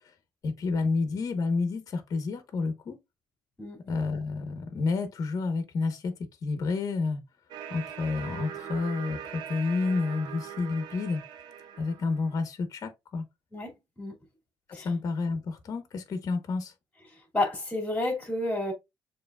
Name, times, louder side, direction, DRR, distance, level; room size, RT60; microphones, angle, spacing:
voice 1, 0.4-3.0 3.8-6.1 6.4-7.2 7.7-11.2 11.8-13.2 14.7-16.7, left 4 dB, 50° left, 1.0 m, -30 dB
sound 1, 7.5-12.3, right 9 dB, 70° right, 0.8 m, -41 dB
voice 2, 13.5-14.2 14.7-14.9 17.1-18.7, left 2 dB, 15° left, 2.4 m, -31 dB
6.8 x 3.1 x 2.4 m
cardioid pair, 110°, 8 cm